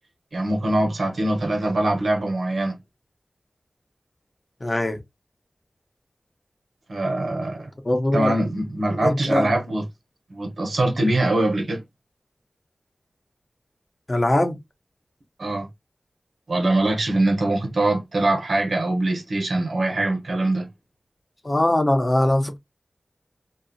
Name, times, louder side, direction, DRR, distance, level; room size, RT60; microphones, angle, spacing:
voice 1, 0.3-2.8 6.9-7.7 8.1-9.8 10.3-11.8 15.4-15.7 16.5-20.7, right 1 dB, 90° right, 0.8 m, -23 dB
voice 2, 4.6-5.0 7.8-8.3 9.0-9.5 14.1-14.6 21.4-22.6, left 1 dB, 40° left, 0.8 m, -21 dB
2.7 x 2.3 x 2.6 m
wide cardioid pair, 50°, 0 cm